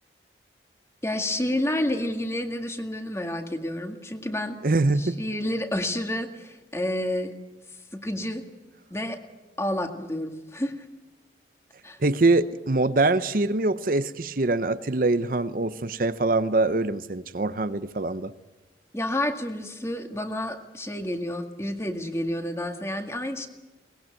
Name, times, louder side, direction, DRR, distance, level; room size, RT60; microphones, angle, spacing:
voice 1, 1.0-4.6 5.0-7.3 7.9-8.4 8.9-9.2 9.6-10.9 11.8-12.0 18.9-23.5, left 1 dB, 15° left, 6 dB, 2.0 m, -29 dB
voice 2, 4.6-5.2 12.0-18.3, right 2 dB, 50° right, 12 dB, 0.8 m, -24 dB
23.0 x 20.0 x 9.1 m, 1.2 s
head